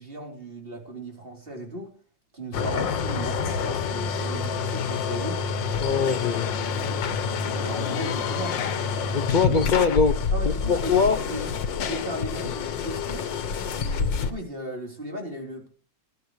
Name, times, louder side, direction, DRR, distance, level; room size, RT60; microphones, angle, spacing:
voice 1, 0.0-2.0 2.3-5.4 7.5-8.6 9.3-9.6 10.3-13.3 13.8-15.7, right 1 dB, 30° right, 4.1 m, -36 dB
sound 1, 2.5-14.3, left 6 dB, 80° left, 1.8 m, -27 dB
voice 2, 5.8-6.5 9.1-11.2, left 5 dB, 65° left, 0.4 m, -23 dB
20.0 x 12.5 x 3.2 m
omnidirectional pair, 1.9 m